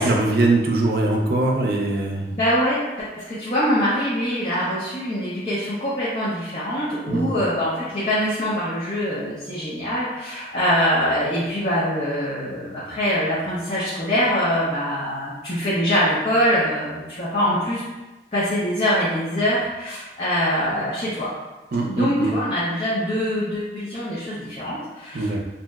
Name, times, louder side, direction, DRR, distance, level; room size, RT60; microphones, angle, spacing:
voice 1, 0.0-2.3 7.1-7.3 21.7-22.4 25.1-25.4, right 2 dB, 60° right, 0 dB, 0.5 m, -21 dB
voice 2, 2.3-17.8 18.3-21.3 21.9-25.4, equal, 40° left, -11 dB, 0.7 m, -24 dB
2.7 x 2.0 x 3.4 m, 1.1 s
head